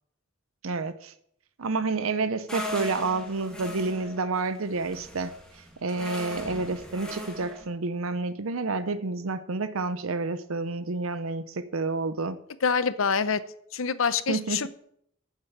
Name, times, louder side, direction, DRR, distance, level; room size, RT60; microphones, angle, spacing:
voice 1, 0.6-1.1 1.6-5.3 5.8-12.4 14.3-14.7, right 3 dB, 85° right, 12 dB, 0.7 m, -29 dB
sound 1, 2.5-7.7, left 1 dB, 5° left, 2.1 m, -39 dB
voice 2, 12.6-13.4 13.7-14.7, left 6 dB, 75° left, 15 dB, 0.7 m, -25 dB
8.9 x 7.6 x 7.2 m, 0.70 s
head